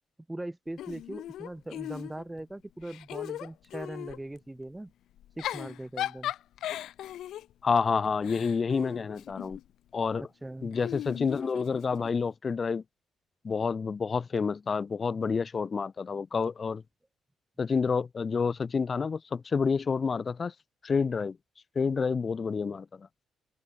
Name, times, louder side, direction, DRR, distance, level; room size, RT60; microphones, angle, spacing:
voice 1, 0.3-4.9 5.4-6.3 10.4-10.7, right 1 dB, 10° right, 3.3 m, -40 dB
Giggle / Chuckle chortle, 0.8-2.4 2.8-4.2 5.2-9.7 10.7-12.1, left 12 dB, 80° left, 0.9 m, -38 dB
voice 2, 7.6-9.6 9.9-10.3 10.6-12.8 13.4-16.8 17.6-20.5 20.8-21.4 21.8-23.1, left 5 dB, 40° left, 0.6 m, -29 dB
open air
cardioid pair, 90°, 0 cm